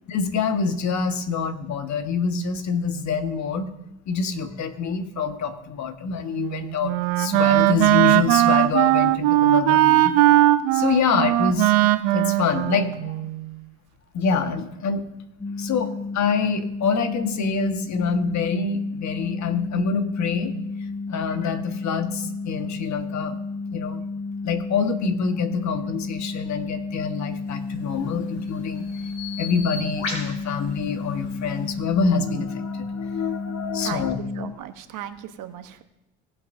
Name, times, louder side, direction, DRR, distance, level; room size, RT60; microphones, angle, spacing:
voice 1, 0.1-3.7 4.1-10.1 10.7-11.8 12.1-12.9 14.1-15.0 15.6-20.5 21.1-23.4 23.7-24.0 24.4-28.9 29.4-34.2, left 5 dB, 55° left, 6 dB, 1.6 m, -26 dB
Wind instrument woodwind instrument, 6.4-13.5, right 15 dB, 80° right, 0.7 m, -19 dB
sound 1, 15.4-34.5, left 3 dB, 10° left, 0.6 m, -32 dB
Bird vocalization bird call bird song, 27.6-31.8, left 3 dB, 80° left, 3.9 m, -37 dB
voice 2, 33.8-35.8, right 10 dB, 60° right, 9 dB, 1.2 m, -37 dB
18.5 x 7.4 x 2.7 m, 0.92 s
hypercardioid pair, 65°, 35 cm